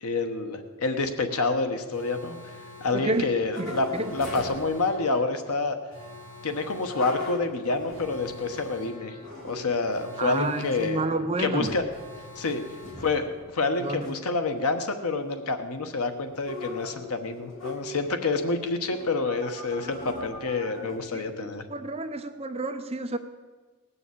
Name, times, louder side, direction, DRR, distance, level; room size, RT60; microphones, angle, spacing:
voice 1, 0.0-2.4 2.8-5.8 6.4-9.2 9.4-11.0 11.4-11.8 12.4-12.6 13.0-13.3 13.5-21.6, left 3 dB, 85° left, 7 dB, 1.1 m, -28 dB
Alarm, 1.9-13.8 19.3-20.8, left 1 dB, 20° left, 6.4 m, -47 dB
sound 1, 2.8-4.7 6.6-8.8 9.2-10.1 10.6-11.2 11.6-12.0 12.2-13.4 13.9-14.1 16.3-18.2 18.8-19.2 19.7-21.2, left 2 dB, 55° left, 3.9 m, -40 dB
voice 2, 2.9-3.3 3.6-4.1 10.2-11.7 13.8-14.1 21.1-23.2, right 2 dB, 25° right, 7 dB, 0.7 m, -30 dB
19.0 x 7.1 x 8.4 m, 1.4 s
head